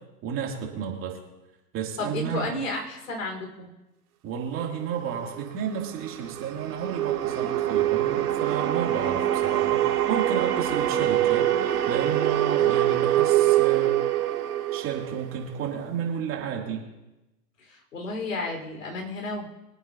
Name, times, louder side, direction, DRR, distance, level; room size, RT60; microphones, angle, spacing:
voice 1, 0.2-1.2 1.7-2.5 4.2-14.0 14.7-16.8, right 8 dB, 25° right, -1 dB, 2.9 m, -32 dB
voice 2, 2.0-3.7 17.6-19.5, left 2 dB, 75° left, 2 dB, 4.9 m, -32 dB
sound 1, 5.4-15.7, right 12 dB, 70° right, 2.9 m, -24 dB
25.0 x 9.2 x 2.9 m, 0.98 s
hypercardioid pair, 125°, 47 cm